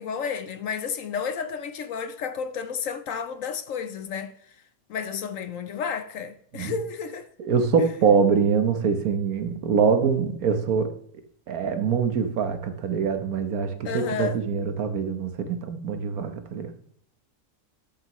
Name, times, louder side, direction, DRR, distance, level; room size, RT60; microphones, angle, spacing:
voice 1, 0.0-4.6 4.9-7.3 13.8-14.4, left 6 dB, 65° left, 1.0 m, -31 dB
voice 2, 7.4-10.9 11.5-16.7, right 6 dB, 70° right, 1.4 m, -24 dB
12.0 x 7.1 x 3.1 m
omnidirectional pair, 1.6 m